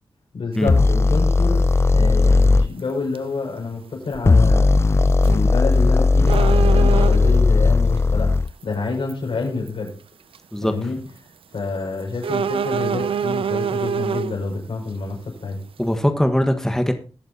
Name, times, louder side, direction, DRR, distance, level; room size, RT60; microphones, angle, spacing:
voice 1, 0.3-1.6 1.9-4.7 5.3-9.9 10.6-11.0 11.5-15.6, left 3 dB, 75° left, 0 dB, 6.1 m, -28 dB
sound 1, 0.5-0.6 2.2-2.4 2.8-2.9 3.1-3.2 5.1-5.4 5.7-5.8 6.3-7.4 8.5-8.6 9.1-9.2 9.7-9.9 10.3-10.4 12.2-14.4, right 7 dB, 80° right, 0.5 m, -25 dB
sound 2, 0.7-2.7 4.1-8.5, left 3 dB, 30° left, 0.4 m, -16 dB
voice 2, 10.5-10.9 15.8-16.9, equal, 5° left, 6 dB, 1.4 m, -21 dB
21.5 x 7.4 x 2.9 m, 0.36 s
cardioid pair, 55°, 9 cm